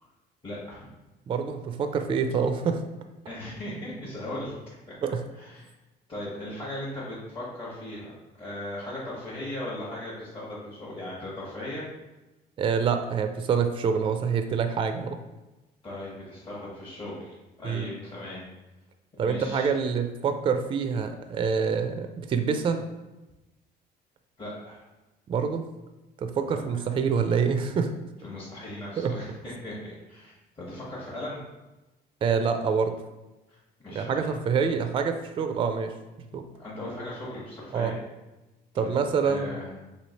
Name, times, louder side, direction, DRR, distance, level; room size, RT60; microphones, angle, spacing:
voice 1, 0.4-0.9 3.2-4.5 5.4-5.6 6.1-8.1 8.4-11.9 15.8-18.4 19.2-19.7 24.4-24.8 26.5-26.8 28.2-31.4 33.5-33.6 33.8-34.3 36.6-38.0 38.7-39.0 39.2-39.7, left 1 dB, 30° left, -9 dB, 1.2 m, -38 dB
voice 2, 1.3-2.8 5.0-5.2 12.6-15.2 17.6-17.9 19.2-22.8 25.3-25.6 26.2-27.9 29.0-29.1 32.2-32.9 33.9-35.9 36.3-36.4 37.7-38.0 38.8-39.5, right 6 dB, 30° right, 7 dB, 0.3 m, -26 dB
3.1 x 2.8 x 4.1 m, 1.1 s
cardioid pair, 110°, 17 cm